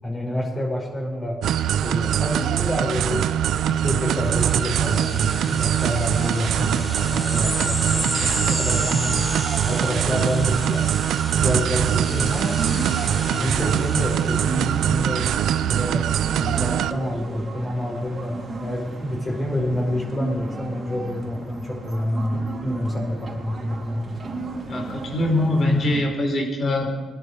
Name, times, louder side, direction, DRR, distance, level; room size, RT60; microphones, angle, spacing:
voice 1, 0.0-1.4 1.8-9.3 9.7-10.9 11.4-12.6 13.2-15.4 15.7-24.1, left 1 dB, 25° left, -1 dB, 5.3 m, -28 dB
sound 1, 1.4-16.9, right 10 dB, 75° right, 0.6 m, -23 dB
sound 2, 4.2-15.2, right 1 dB, 5° right, 4.8 m, -32 dB
sound 3, 11.5-26.0, right 2 dB, 40° right, 3.2 m, -34 dB
voice 2, 24.7-27.0, left 1 dB, 50° left, 3 dB, 3.9 m, -22 dB
21.0 x 11.5 x 5.0 m, 1.3 s
cardioid pair, 90°, 0 cm